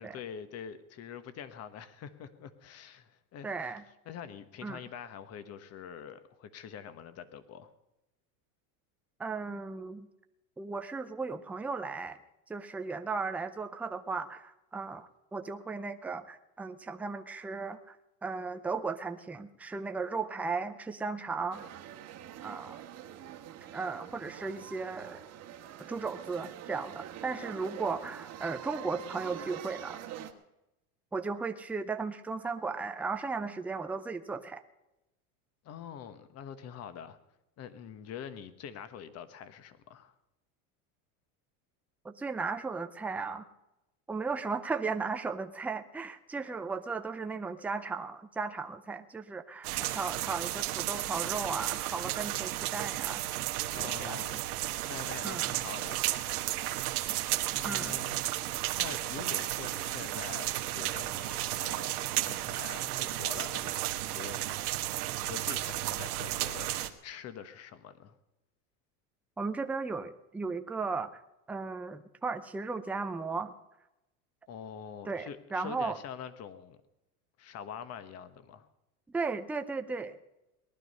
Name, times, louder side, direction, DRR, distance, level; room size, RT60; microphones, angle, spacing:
voice 1, 0.0-3.7 4.0-7.7 35.6-37.2 37.6-40.1 53.7-54.4 54.9-56.5 57.5-58.2 58.8-64.6 65.2-68.1 74.5-76.8 77.4-78.7, left 8 dB, 35° left, 12 dB, 1.3 m, -45 dB
voice 2, 3.4-3.8 4.6-4.8 9.2-10.1 10.6-12.2 12.5-18.0 18.2-21.6 22.4-22.8 23.7-25.2 25.9-30.0 31.1-34.6 42.0-43.5 44.1-53.2 54.0-54.2 55.2-55.5 57.6-58.0 69.4-71.1 71.5-73.5 75.0-76.0 79.1-80.2, right 4 dB, 5° right, 7 dB, 0.5 m, -36 dB
sound 1, 21.5-30.3, right 10 dB, 35° right, 1.5 m, -45 dB
sound 2, 49.6-66.9, right 15 dB, 85° right, 1.4 m, -33 dB
19.0 x 11.5 x 5.5 m, 0.92 s
supercardioid pair, 140°, 44 cm